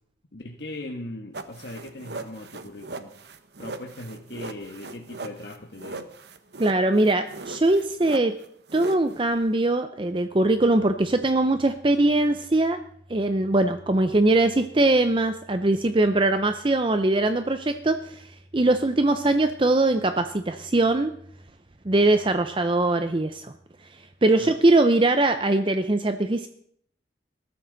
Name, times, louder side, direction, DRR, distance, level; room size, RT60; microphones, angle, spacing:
voice 1, 0.3-3.1 3.6-6.1 24.4-24.6, left 1 dB, 70° left, 2 dB, 1.4 m, -39 dB
sound 1, 1.3-9.5, right 3 dB, 70° right, 1.2 m, -39 dB
voice 2, 6.6-8.4 8.7-12.8 13.1-18.3 18.5-21.1 21.8-23.5 24.2-26.5, right 2 dB, 30° right, 9 dB, 0.6 m, -21 dB
21.0 x 13.0 x 4.0 m, 0.64 s
head